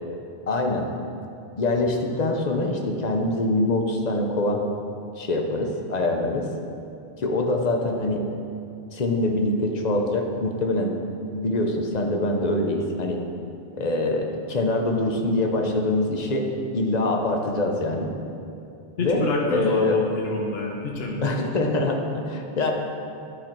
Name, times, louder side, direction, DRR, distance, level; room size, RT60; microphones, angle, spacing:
voice 1, 0.5-0.9 1.6-4.7 5.2-6.5 7.2-8.3 8.9-11.0 11.3-13.2 13.8-16.5 16.7-18.1 19.0-19.2 19.5-20.0 21.2-22.7, left 2 dB, 45° left, 3 dB, 0.8 m, -24 dB
voice 2, 19.0-21.3, left 2 dB, 75° left, 0 dB, 1.1 m, -27 dB
10.0 x 4.2 x 4.4 m, 2.6 s
omnidirectional pair, 1.0 m